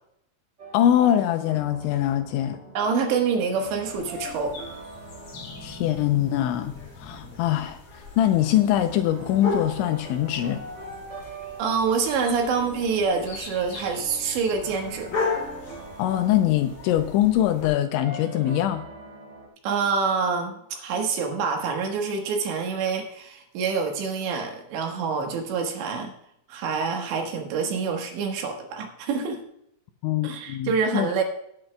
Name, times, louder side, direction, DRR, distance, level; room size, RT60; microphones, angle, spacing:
sound 1, 0.6-19.5, right 1 dB, 30° right, 2.1 m, -43 dB
voice 1, 0.7-2.6 5.6-10.7 16.0-18.8 30.0-31.1, left 12 dB, 85° left, 8 dB, 2.8 m, -23 dB
voice 2, 2.8-4.6 11.6-15.1 19.6-26.1 26.5-29.4 30.2-31.2, right 5 dB, 70° right, 3 dB, 3.4 m, -26 dB
sound 2, 3.9-17.7, left 4 dB, 40° left, 2.4 m, -37 dB
17.5 x 9.8 x 2.3 m, 0.74 s
omnidirectional pair, 5.7 m